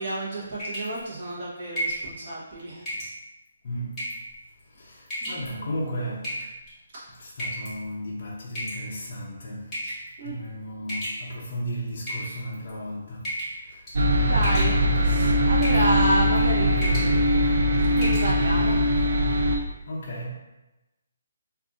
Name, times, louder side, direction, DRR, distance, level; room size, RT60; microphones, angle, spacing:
voice 1, 0.0-2.9 5.2-5.7 10.2-10.4 14.2-17.2 17.9-18.8, right 1 dB, 30° right, -7 dB, 0.9 m, -30 dB
sound 1, 0.6-1.0 1.8-2.1 2.9-3.1 3.9-4.3 5.1-5.5 6.2-6.7 7.4-7.7 8.6-9.1 9.7-10.1 10.9-11.5 12.0-12.7 13.2-13.6 13.9-14.1 14.4-15.0 15.6-15.9 16.2-16.5 16.8-17.1 17.5-17.6 18.0-18.3, equal, 10° left, 0.8 m, -32 dB
voice 2, 3.6-4.1 4.8-6.4 7.2-9.7 10.2-13.3 13.6-13.8 19.9-20.3, equal, 35° left, -5 dB, 0.5 m, -34 dB
sound 2, 13.9-19.6, equal, 50° right, 0.5 m, -21 dB
2.5 x 2.4 x 3.7 m, 1.0 s
hypercardioid pair, 180°, 0 cm